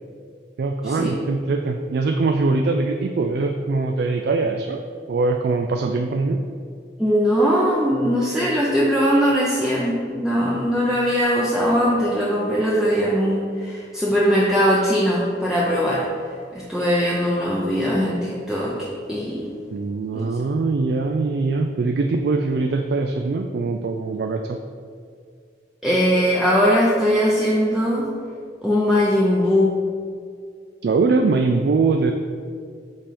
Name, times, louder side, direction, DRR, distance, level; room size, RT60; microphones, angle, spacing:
voice 1, 0.6-4.8 5.1-6.4 19.7-24.6 30.8-32.1, right 3 dB, 60° right, 4 dB, 0.3 m, -22 dB
voice 2, 7.0-16.0 16.5-18.8 19.1-19.5 20.1-20.2 25.8-28.1 28.6-29.8, equal, 5° right, -6 dB, 0.6 m, -20 dB
5.4 x 4.4 x 5.2 m, 2.2 s
head